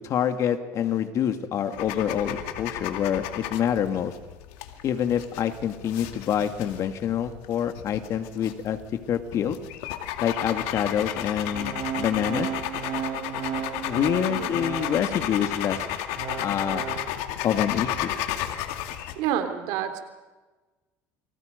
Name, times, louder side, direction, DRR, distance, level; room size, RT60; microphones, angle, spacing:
voice 1, 0.0-4.1 4.8-8.8 9.1-9.6 10.2-12.5 13.9-15.8 16.4-16.8 17.4-18.2, left 9 dB, 55° left, 7 dB, 2.4 m, -26 dB
sound 1, 1.7-19.2, left 11 dB, 85° left, 2.3 m, -33 dB
Organ, 11.5-15.3 15.8-17.1, right 9 dB, 55° right, 1.9 m, -34 dB
voice 2, 14.3-14.6 19.2-20.0, right 10 dB, 80° right, 7 dB, 3.5 m, -28 dB
29.0 x 24.5 x 5.4 m, 1.2 s
supercardioid pair, 100°, 6 cm